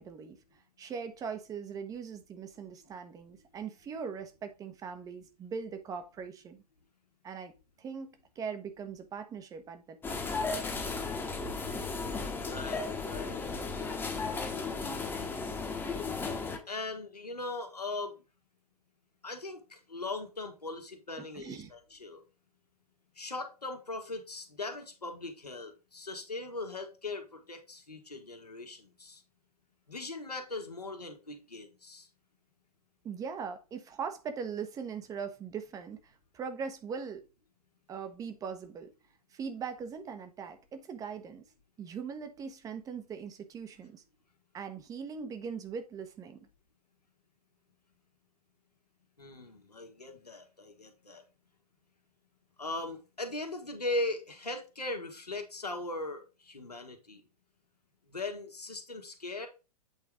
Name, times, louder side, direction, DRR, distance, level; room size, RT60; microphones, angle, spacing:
voice 1, 0.0-6.6 7.2-7.5 7.8-10.3 21.3-21.7 33.0-37.3 37.9-38.9 39.3-41.4 41.8-44.0 44.5-46.4, right 6 dB, 15° right, 1.1 m, -40 dB
sound 1, 10.0-16.6, left 4 dB, 10° left, 1.3 m, -35 dB
voice 2, 12.4-13.6 16.7-18.2 19.2-22.2 23.2-29.2 29.9-32.1 49.2-51.2 52.6-57.2 58.1-59.5, left 2 dB, 80° left, 1.8 m, -39 dB
8.3 x 4.6 x 3.7 m
figure-of-eight pair, 105°, 20 cm